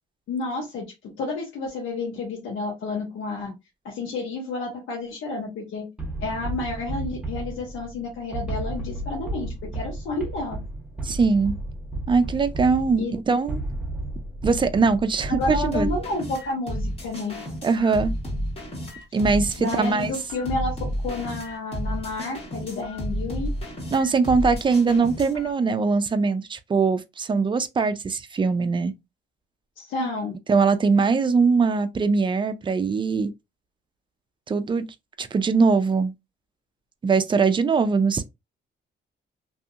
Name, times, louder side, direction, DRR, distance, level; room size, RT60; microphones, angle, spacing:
voice 1, 0.3-3.5 3.8-5.9 6.2-10.6 13.0-13.1 15.3-17.4 19.6-20.7 21.0-23.5 29.8-30.3, left 3 dB, 85° left, 1.0 m, -30 dB
sound 1, 6.0-15.9, right 2 dB, 5° right, 1.1 m, -33 dB
voice 2, 11.0-11.6 12.1-13.6 14.4-15.9 17.6-18.1 19.1-20.1 23.9-28.9 30.0-30.1 30.5-33.3 34.5-34.9 35.2-36.1 37.0-38.2, right 4 dB, 25° right, 0.4 m, -21 dB
sound 2, 15.4-25.5, equal, 30° left, 1.4 m, -31 dB
2.7 x 2.6 x 2.4 m
cardioid pair, 90°, 20 cm